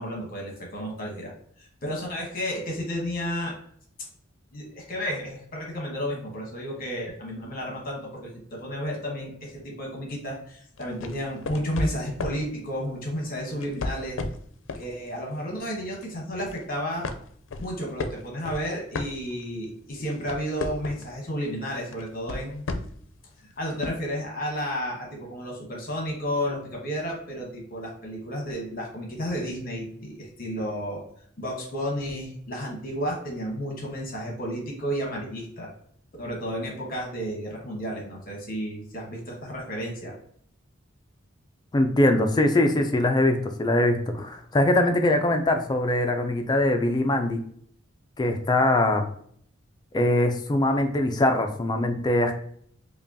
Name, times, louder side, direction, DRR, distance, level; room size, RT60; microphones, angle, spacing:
voice 1, 0.0-1.3 1.6-3.5 4.5-14.2 14.8-17.1 17.6-22.6 23.4-31.0 31.4-35.7 36.2-40.1, equal, 50° left, -1 dB, 1.1 m, -32 dB
sound 1, 10.8-12.5 13.5-14.9 15.3-15.6 16.0-16.6 17.0-19.6 20.0-21.2 21.9-23.1 23.8-23.9, left 3 dB, 85° left, 0.4 m, -33 dB
voice 2, 41.7-47.4 48.2-49.1 49.9-52.3, left 1 dB, 20° left, 5 dB, 0.4 m, -22 dB
5.1 x 2.2 x 2.7 m, 0.63 s
head